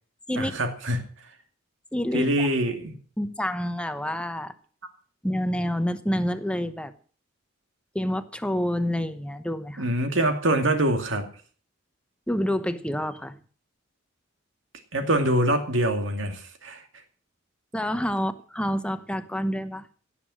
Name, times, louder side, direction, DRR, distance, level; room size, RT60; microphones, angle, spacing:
voice 1, 0.3-1.1 2.1-3.0 9.8-11.3 14.9-16.8, right 1 dB, 70° right, 6 dB, 2.5 m, -24 dB
voice 2, 1.9-2.5 3.2-4.5 5.2-6.9 7.9-9.8 12.3-13.4 17.7-19.9, equal, 5° left, 11 dB, 0.9 m, -28 dB
17.0 x 7.1 x 7.5 m, 0.42 s
head